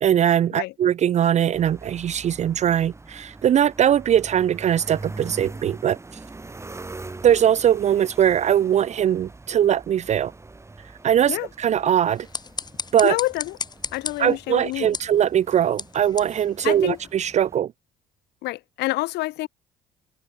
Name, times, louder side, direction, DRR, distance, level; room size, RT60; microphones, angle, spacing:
voice 1, 0.0-6.0 7.2-10.3 11.0-12.3 12.9-13.2 14.2-17.7, right 10 dB, 40° right, 0.5 m, -21 dB
sound 1, 1.5-17.6, right 3 dB, 15° right, 5.7 m, -43 dB
sound 2, 12.1-17.3, left 5 dB, 25° left, 1.3 m, -36 dB
voice 2, 13.0-13.6 13.9-14.9 16.6-17.0 18.4-19.5, left 18 dB, 80° left, 1.3 m, -27 dB
cardioid pair, 110°, 17 cm